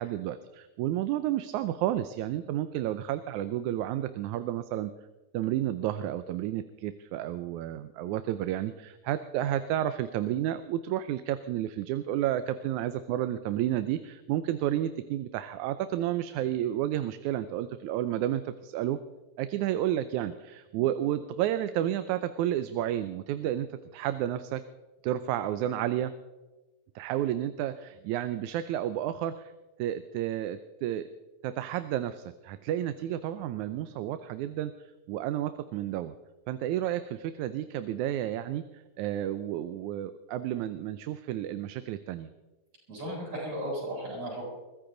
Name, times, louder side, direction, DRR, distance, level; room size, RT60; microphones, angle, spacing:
voice 1, 0.0-4.9 5.3-19.0 19.4-24.6 25.0-26.1 27.0-29.5 29.8-31.1 31.4-36.1 36.5-42.3, right 12 dB, 85° right, 11 dB, 2.1 m, -31 dB
voice 2, 42.9-44.5, right 1 dB, 65° right, -3 dB, 8.9 m, -35 dB
22.0 x 15.0 x 3.9 m, 1.2 s
omnidirectional pair, 3.4 m